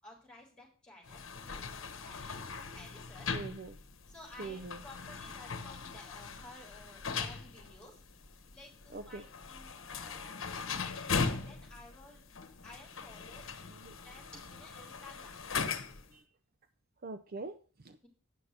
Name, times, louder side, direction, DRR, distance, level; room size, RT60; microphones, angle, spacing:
voice 1, 0.0-2.4 2.7-3.3 4.1-8.0 8.5-12.3 12.6-13.5 14.0-15.4 18.0-18.1, left 2 dB, 5° left, -2 dB, 3.8 m, -54 dB
sound 1, 1.1-16.1, left 5 dB, 75° left, 1.0 m, -40 dB
voice 2, 3.3-3.8 4.4-4.8 8.9-9.2 13.7-14.0 16.1-16.2 17.0-17.6 17.8-18.0, right 3 dB, 45° right, 10 dB, 0.5 m, -43 dB
9.3 x 5.8 x 6.5 m, 0.39 s
head